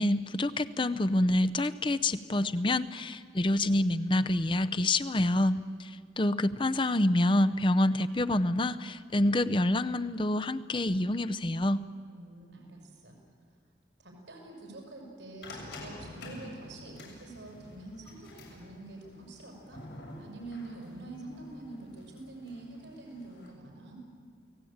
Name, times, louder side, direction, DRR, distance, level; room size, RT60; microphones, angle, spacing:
voice 1, 0.0-11.8, left 1 dB, 25° left, 12 dB, 0.7 m, -27 dB
voice 2, 12.1-13.2 14.0-19.8 20.2-24.0, right 2 dB, 90° right, 1 dB, 6.0 m, -46 dB
sound 1, 15.4-23.5, left 1 dB, 90° left, 7.4 m, -48 dB
29.5 x 18.5 x 8.7 m, 2.1 s
head